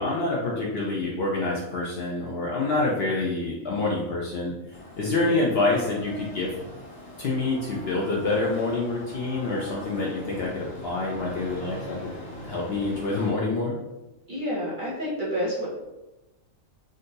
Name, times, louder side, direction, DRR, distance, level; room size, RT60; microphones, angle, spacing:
voice 1, 0.0-4.5 5.0-6.5 7.2-12.1 12.4-13.8, left 2 dB, 60° left, -4 dB, 0.7 m, -27 dB
sound 1, 4.7-13.3, equal, 80° left, 1.6 m, -42 dB
voice 2, 14.3-15.7, equal, 45° right, -5 dB, 0.7 m, -29 dB
3.7 x 2.6 x 2.6 m, 1.0 s
omnidirectional pair, 1.4 m